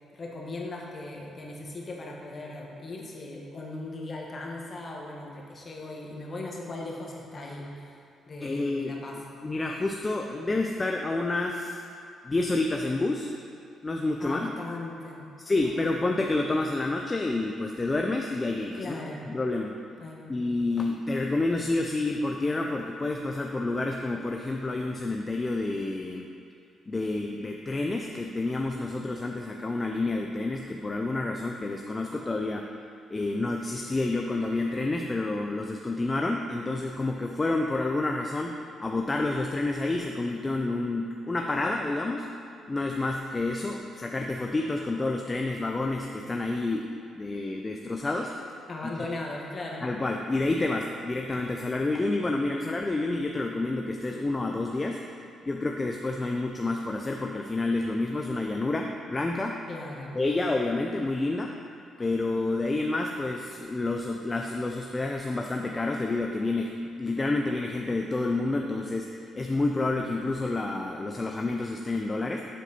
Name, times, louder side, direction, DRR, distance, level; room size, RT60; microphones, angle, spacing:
voice 1, 0.1-7.9 8.3-9.2 14.2-15.3 15.8-15.9 18.8-19.2 20.0-20.3 48.7-49.9 59.7-60.1, left 2 dB, 40° left, -2 dB, 1.3 m, -38 dB
voice 2, 8.4-9.0 9.4-11.8 12.2-13.3 13.8-14.5 15.4-19.0 19.2-19.8 20.3-26.3 26.9-32.7 33.1-42.3 42.7-48.3 48.8-48.9 49.8-55.0 55.4-59.6 60.1-61.5 62.0-72.4, left 2 dB, 25° left, 2 dB, 0.4 m, -29 dB
7.5 x 4.0 x 5.5 m, 2.4 s
cardioid pair, 90°, 0 cm